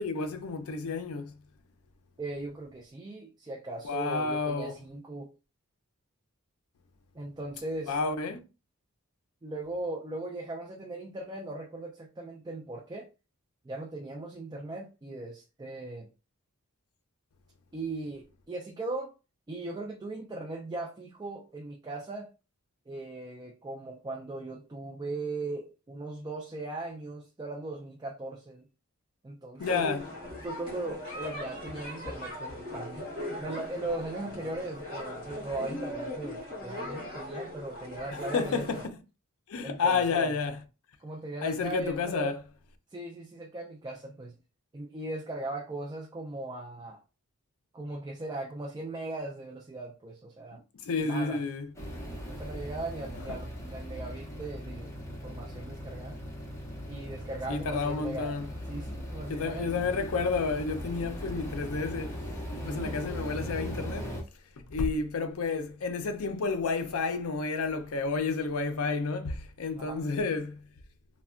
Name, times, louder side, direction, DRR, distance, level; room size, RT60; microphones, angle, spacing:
voice 1, 0.0-1.3 3.8-4.8 7.9-8.4 29.6-30.1 38.1-39.0 39.5-40.6 41.4-42.4 50.5-51.7 57.5-58.5 59.3-62.2 62.6-64.1 64.6-70.6, left 4 dB, 70° left, 0.5 m, -30 dB
voice 2, 2.2-5.3 7.1-7.9 9.4-13.1 13.6-16.1 17.7-19.1 19.5-22.3 22.9-28.6 29.2-29.9 30.4-33.1 33.4-38.8 39.6-40.3 41.0-42.3 42.9-44.3 44.7-47.0 47.7-50.6 51.0-51.4 52.3-56.2 56.9-58.4 58.7-59.7 62.6-62.9 69.8-70.1, right 2 dB, 20° right, 0.3 m, -38 dB
sound 1, 29.6-38.9, left 1 dB, 40° left, 1.6 m, -39 dB
sound 2, 51.7-64.2, equal, 10° left, 0.6 m, -39 dB
3.3 x 2.1 x 2.4 m
head